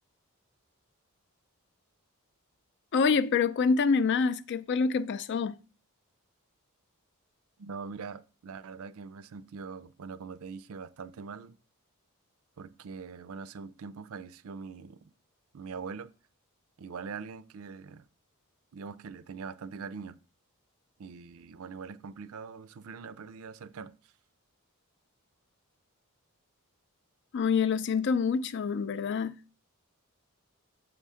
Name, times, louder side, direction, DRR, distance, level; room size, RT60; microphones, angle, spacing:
voice 1, 2.9-5.6 27.3-29.3, left 5 dB, 50° left, 0.4 m, -26 dB
voice 2, 7.6-11.6 12.6-15.1 15.5-16.1 16.8-18.1 18.7-20.2 21.0-23.9, right 5 dB, 65° right, 0.4 m, -42 dB
6.9 x 3.6 x 5.5 m
head